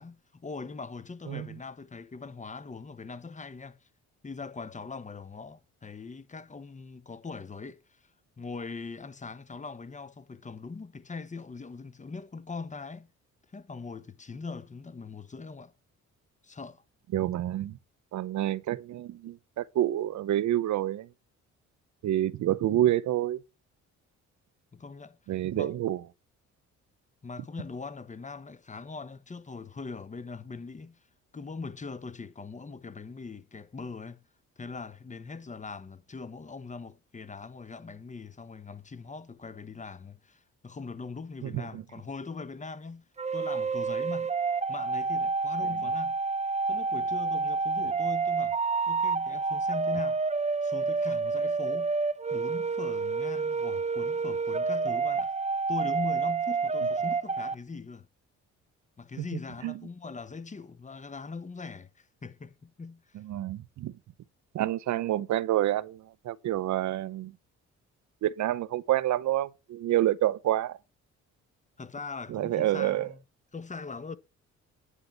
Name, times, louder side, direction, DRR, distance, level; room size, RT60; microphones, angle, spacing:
voice 1, 0.0-3.8 4.2-8.1 8.4-13.1 13.5-15.7 16.4-16.8 24.7-25.2 25.5-25.8 27.2-31.0 31.3-34.2 34.6-43.0 43.3-44.3 44.7-46.2 46.7-48.6 48.9-50.2 50.6-51.9 52.3-55.3 55.7-58.1 59.0-63.2 71.8-73.2 73.5-74.2, left 4 dB, 25° left, 1.0 m, -41 dB
voice 2, 17.1-17.8 18.1-21.1 22.0-23.4 25.3-26.0 41.4-41.8 59.2-59.3 59.6-59.7 63.1-63.9 64.5-67.3 68.2-70.8 72.3-73.1, right 13 dB, 70° right, 0.7 m, -28 dB
sound 1, 43.2-57.6, right 4 dB, 20° right, 0.8 m, -29 dB
10.0 x 5.7 x 6.6 m
cardioid pair, 90°, 30 cm